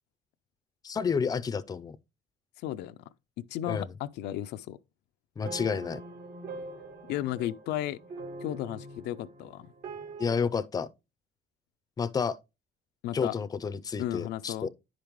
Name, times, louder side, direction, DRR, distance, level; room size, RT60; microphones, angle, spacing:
voice 1, 0.8-2.0 3.7-3.9 5.4-6.0 10.2-10.9 12.0-12.4 13.1-14.7, left 6 dB, 20° left, 0.5 m, -30 dB
voice 2, 2.6-3.0 3.4-4.8 7.1-8.0 8.4-9.7 13.0-13.3 14.0-14.7, left 13 dB, 80° left, 0.4 m, -34 dB
sound 1, 5.4-10.4, right 3 dB, 65° right, 2.3 m, -43 dB
10.0 x 5.1 x 3.1 m
cardioid pair, 110°, 17 cm